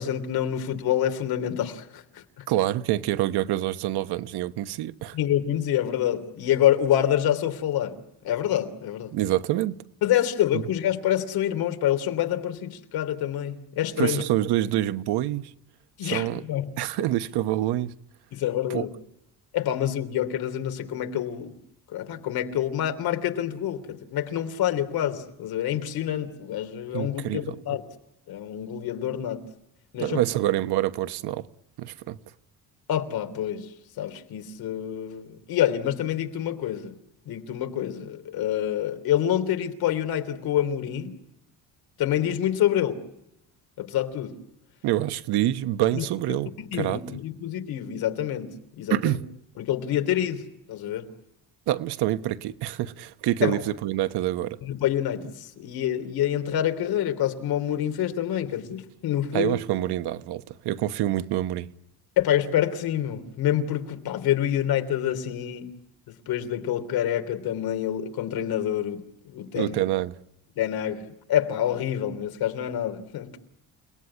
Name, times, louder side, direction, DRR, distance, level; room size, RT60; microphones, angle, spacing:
voice 1, 0.0-2.0 2.4-2.5 5.1-8.0 8.2-9.1 10.0-14.2 16.0-16.7 18.3-18.9 19.5-21.5 21.9-27.8 28.3-29.4 29.9-30.2 32.9-33.7 34.0-36.9 37.2-41.1 42.0-43.0 43.8-44.3 45.9-46.0 46.7-48.5 48.8-49.2 49.6-51.1 53.4-53.6 54.6-59.5 62.2-65.7 66.3-69.7 70.6-71.0 71.3-73.4, left 11 dB, 65° left, 3.2 m, -27 dB
voice 2, 2.5-5.2 9.1-9.7 10.5-10.6 14.0-15.5 16.0-16.4 16.8-17.9 18.7-18.8 26.9-27.8 30.0-31.5 31.8-32.2 44.8-47.0 48.9-49.2 51.7-54.6 59.3-61.7 69.5-70.1, right 14 dB, 85° right, 1.2 m, -26 dB
30.0 x 19.0 x 9.8 m
cardioid pair, 175°, 38 cm